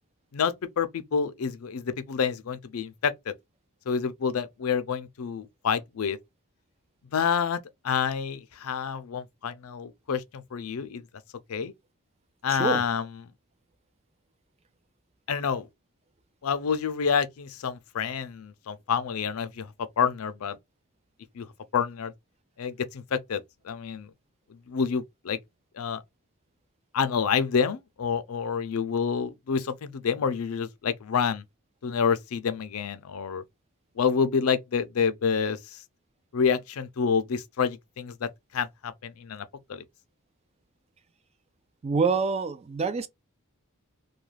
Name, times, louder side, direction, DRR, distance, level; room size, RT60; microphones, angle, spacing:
voice 1, 0.3-3.3 3.9-6.2 7.1-11.0 11.5-11.7 12.4-13.0 15.3-15.7 16.4-19.7 20.0-20.6 21.4-21.5 21.7-22.1 22.6-24.1 24.7-25.4 25.8-26.0 26.9-31.4 31.8-33.4 34.0-35.8 36.3-39.8, left 6 dB, 75° left, 0.4 m, -28 dB
voice 2, 12.5-12.9 41.8-43.1, right 5 dB, 30° right, 0.3 m, -26 dB
2.3 x 2.3 x 3.1 m
head